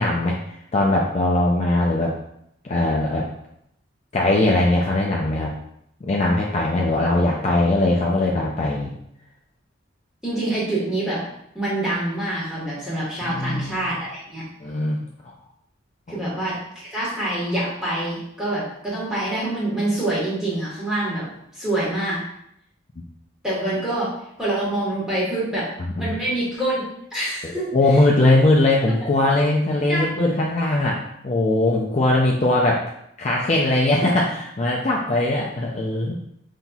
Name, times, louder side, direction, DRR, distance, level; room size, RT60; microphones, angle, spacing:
voice 1, 0.0-2.1 2.6-3.3 4.1-5.5 6.0-8.9 13.2-14.0 14.6-15.3 23.0-23.1 26.0-26.1 27.4-32.8 33.2-36.1, left 2 dB, 35° left, -2 dB, 0.4 m, -20 dB
voice 2, 10.2-11.2 11.5-14.4 16.1-21.3 21.5-22.2 23.4-24.1 24.4-25.7 26.0-27.7 29.9-30.1, right 1 dB, 5° right, -8 dB, 1.3 m, -26 dB
5.7 x 2.7 x 2.3 m, 0.75 s
head